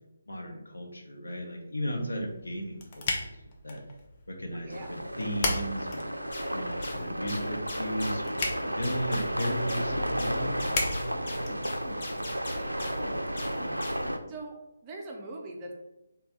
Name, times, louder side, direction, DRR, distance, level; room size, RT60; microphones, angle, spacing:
voice 1, 0.3-3.3 3.6-3.8 4.3-6.1 6.5-10.7, equal, 75° left, 1 dB, 0.8 m, -35 dB
sound 1, 2.3-12.2, left 2 dB, 30° left, 0.6 m, -37 dB
voice 2, 4.6-4.9 12.4-13.2 14.3-14.6 14.8-15.7, right 2 dB, 20° right, 0 dB, 0.5 m, -42 dB
sound 2, 4.7-14.2, equal, 90° right, 0.3 m, -33 dB
sound 3, 6.3-14.2, left 1 dB, 45° left, 0.9 m, -41 dB
3.3 x 2.3 x 3.8 m, 0.92 s
figure-of-eight pair, 145°, 0 cm